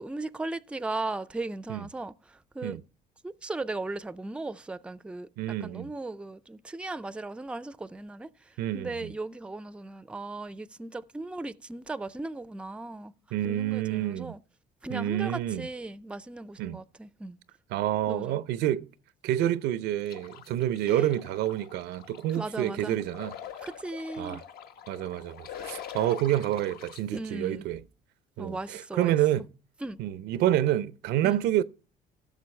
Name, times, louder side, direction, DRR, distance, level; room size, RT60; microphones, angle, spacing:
voice 1, 0.0-2.8 3.2-5.3 5.6-8.3 8.7-13.1 13.4-14.4 14.8-17.4 18.1-18.4 20.9-21.1 22.3-23.0 23.6-24.4 27.1-27.7 28.4-29.2 29.8-30.0 31.2-31.4, right 2 dB, 5° right, 0.4 m, -37 dB
voice 2, 5.4-5.9 8.6-9.1 13.3-14.3 14.9-15.7 16.6-16.8 17.7-18.9 19.2-23.3 24.2-24.4 24.9-27.8 28.4-29.5 30.0-31.6, right 12 dB, 80° right, 0.6 m, -28 dB
sound 1, 20.1-27.0, left 8 dB, 65° left, 1.1 m, -44 dB
15.5 x 6.7 x 3.2 m
cardioid pair, 110°, 17 cm